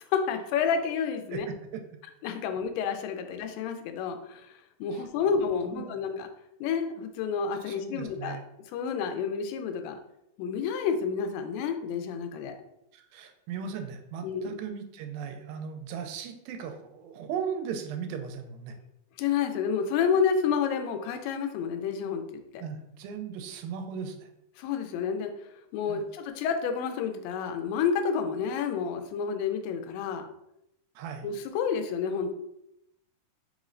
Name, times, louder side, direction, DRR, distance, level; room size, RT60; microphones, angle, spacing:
voice 1, 0.1-1.5 2.2-4.5 4.8-6.3 6.6-8.4 8.7-10.0 10.4-12.6 14.2-14.5 19.2-22.6 24.6-25.3 25.7-30.3 31.2-32.3, left 6 dB, 80° left, 6 dB, 2.2 m, -29 dB
voice 2, 1.3-1.8 2.4-2.5 4.9-5.0 5.7-6.2 7.6-8.4 12.9-18.7 22.6-24.3 25.9-26.1 31.0-31.3, right 7 dB, 85° right, 5 dB, 2.4 m, -37 dB
5.3 x 3.0 x 2.5 m, 0.82 s
omnidirectional pair, 4.1 m